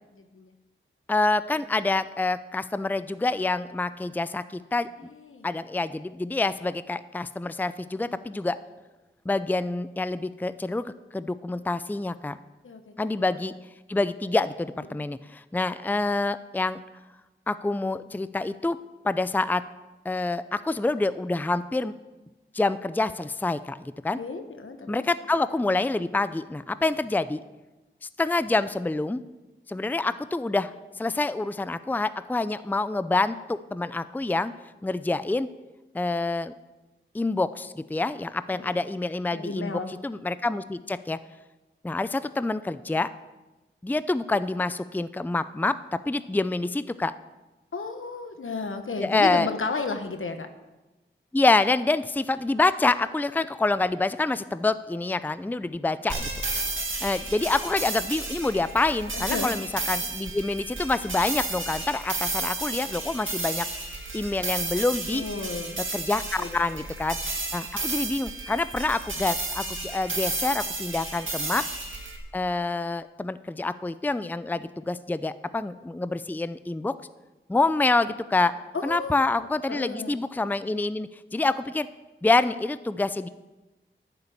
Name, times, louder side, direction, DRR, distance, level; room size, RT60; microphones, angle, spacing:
voice 1, 0.1-0.5 5.0-5.5 8.1-8.2 12.6-12.9 14.9-15.0 24.2-25.0 38.5-38.8 39.3-39.9 47.7-50.5 59.1-59.5 65.1-65.8 66.4-66.9 71.3-71.5 78.7-79.2 79.7-80.2, left 4 dB, 80° left, 7 dB, 1.2 m, -33 dB
voice 2, 1.1-4.9 5.4-8.6 9.3-12.4 13.0-13.5 13.9-16.8 17.5-18.8 19.0-19.6 20.0-21.9 22.5-24.2 24.9-27.4 28.2-29.2 29.7-30.7 31.0-34.5 34.8-35.5 35.9-36.5 37.1-41.2 41.8-43.1 43.8-47.1 49.0-49.5 51.3-56.3 57.0-63.7 64.1-65.2 65.9-67.2 67.5-71.6 72.3-76.9 77.5-78.5 78.8-81.9 82.2-83.3, left 3 dB, 10° left, 14 dB, 0.4 m, -27 dB
sound 1, 56.1-72.2, right 3 dB, 75° right, 2.1 m, -32 dB
11.5 x 6.8 x 8.5 m, 1.1 s
cardioid pair, 40°, 21 cm